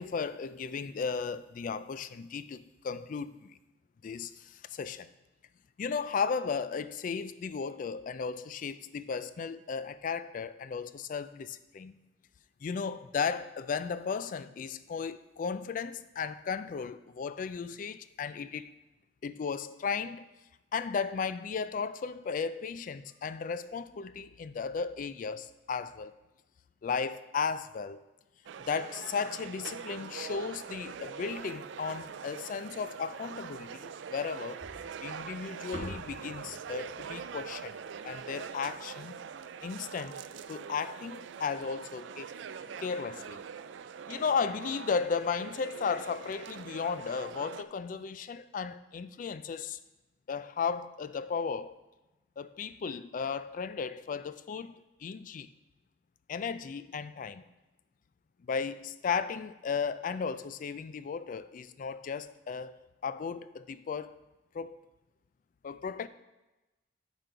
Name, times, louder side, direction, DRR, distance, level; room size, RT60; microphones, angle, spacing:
voice 1, 0.0-3.6 4.0-5.1 5.8-11.9 12.6-18.7 19.2-20.3 20.7-26.1 26.8-28.0 28.6-34.6 35.0-37.8 38.0-39.2 39.6-40.2 40.5-42.3 42.8-43.4 44.1-49.8 50.3-51.8 52.4-54.7 55.0-55.5 56.3-57.5 58.4-62.8 63.0-64.2 64.5-64.8 65.6-66.1, left 5 dB, 45° left, 0.3 m, -35 dB
sound 1, 28.5-47.6, right 7 dB, 80° right, 0.4 m, -43 dB
sound 2, 34.6-38.9, equal, 40° right, 1.7 m, -47 dB
9.0 x 5.2 x 4.5 m
head